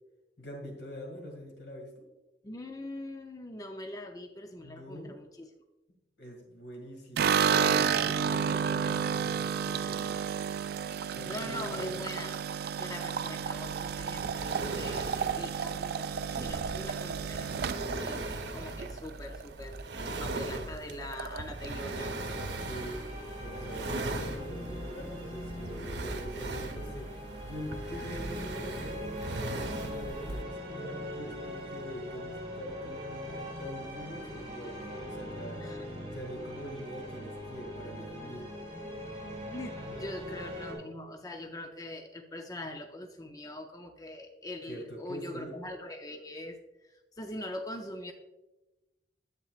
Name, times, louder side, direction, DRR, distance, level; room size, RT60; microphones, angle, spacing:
voice 1, 0.4-2.1 4.6-5.2 6.2-10.2 11.1-12.0 22.6-23.0 23.4-38.6 39.9-40.2 44.7-45.6, equal, 85° left, 2 dB, 2.1 m, -44 dB
voice 2, 2.4-5.5 11.2-12.4 12.8-17.5 18.0-22.2 28.1-28.2 35.6-35.8 39.5-46.6 47.2-48.1, left 1 dB, 20° left, 4 dB, 0.6 m, -42 dB
sound 1, 7.2-19.4 19.7-20.4 20.6-20.7 21.0-21.7, right 7 dB, 60° right, 0.3 m, -31 dB
sound 2, 13.4-30.4, right 2 dB, 75° right, 0.9 m, -39 dB
sound 3, 21.4-40.8, equal, 35° right, 2.7 m, -41 dB
10.5 x 8.1 x 2.4 m, 1.0 s
head